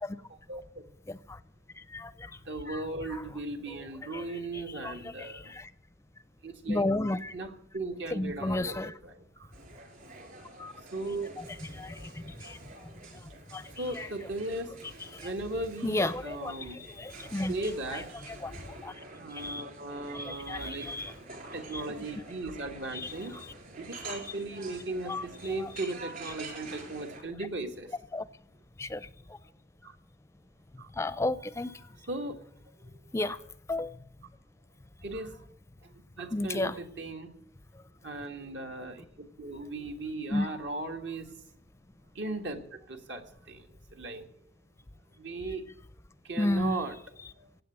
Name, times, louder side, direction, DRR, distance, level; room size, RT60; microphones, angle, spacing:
voice 1, 0.3-0.8 2.2-5.5 6.4-6.8 7.3-9.5 10.9-11.3 13.8-16.8 17.5-18.1 19.1-20.9 21.4-27.9 29.8-30.0 30.8-30.9 32.1-32.4 32.8-32.9 33.2-33.4 35.0-35.5 35.8-37.3 38.0-41.4 42.2-44.3 45.2-45.6 46.2-47.0 47.4-47.5, right 2 dB, 70° right, 1.9 m, -37 dB
voice 2, 1.1-1.4 1.7-2.3 2.7-2.8 3.1-3.2 4.1-4.2 4.5-5.7 6.7-7.4 8.1-8.9 10.6-10.7 11.4-13.2 13.5-13.7 14.0-14.1 15.1-15.3 15.8-17.5 17.9-18.0 18.3-18.9 19.3-19.6 20.1-21.1 21.7-21.8 22.9-23.1 25.1-25.3 25.6-25.7 28.1-28.3 28.8-29.4 30.9-31.8 33.1-33.4 33.7-34.0 36.3-36.8 40.3-40.5 46.4-46.8, left 2 dB, 15° left, 0.5 m, -33 dB
sound 1, 9.5-27.2, right 3 dB, 55° right, 4.6 m, -48 dB
16.5 x 8.3 x 9.0 m
head